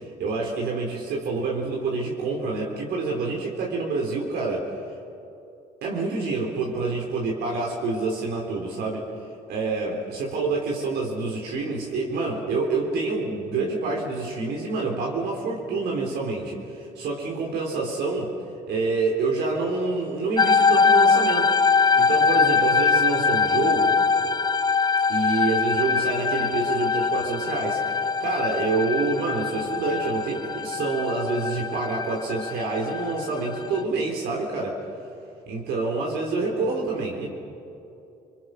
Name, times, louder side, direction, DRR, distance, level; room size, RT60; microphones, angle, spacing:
voice 1, 0.2-4.7 5.8-9.1 9.5-18.3 18.7-21.5 22.0-24.0 25.1-34.8 35.5-37.3, right 3 dB, 75° right, -1 dB, 3.7 m, -27 dB
sound 1, 20.4-33.8, left 5 dB, 25° left, 0.7 m, -22 dB
29.0 x 21.0 x 6.3 m, 2.8 s
supercardioid pair, 80°, 17 cm